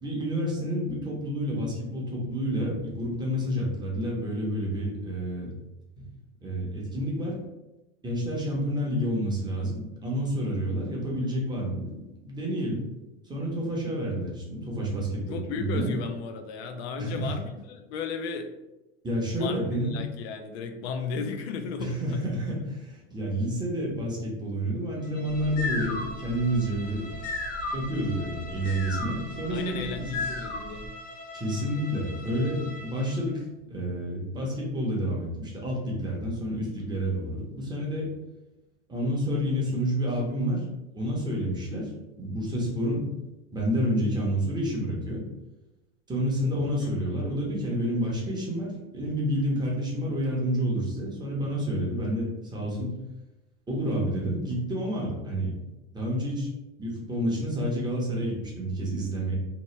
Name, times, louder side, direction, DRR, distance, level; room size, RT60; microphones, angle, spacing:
voice 1, 0.0-5.5 6.0-6.1 6.4-7.4 8.0-12.8 13.2-15.9 17.0-17.3 19.0-19.9 21.8-27.1 27.7-30.2 31.3-38.1 38.9-40.6 40.9-43.1 43.5-45.2 46.1-53.0 53.7-55.5 55.9-56.5 56.8-59.3, equal, 10° right, -3 dB, 0.7 m, -29 dB
voice 2, 15.3-18.5 19.3-22.2 29.5-30.9 46.8-47.1, left 5 dB, 60° left, 6 dB, 0.4 m, -35 dB
Bowed string instrument, 25.0-33.4, left 1 dB, 25° left, 0.7 m, -44 dB
sound 1, 25.3-30.9, left 3 dB, 90° left, 0.9 m, -35 dB
2.9 x 2.1 x 3.1 m, 1.0 s
supercardioid pair, 130°, 36 cm